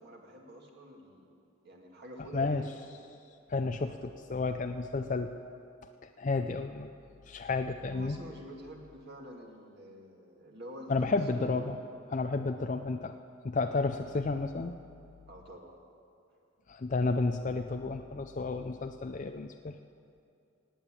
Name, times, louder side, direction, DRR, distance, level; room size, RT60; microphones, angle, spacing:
voice 1, 0.0-1.4 1.6-2.7 7.9-11.9 15.3-15.8, equal, 50° right, 0 dB, 2.1 m, -48 dB
voice 2, 3.5-5.3 6.2-6.9 7.3-8.2 10.9-11.8 12.1-13.1 13.4-14.8 16.7-19.8, left 3 dB, 35° left, 6 dB, 0.4 m, -31 dB
18.0 x 8.7 x 8.8 m, 2.5 s
head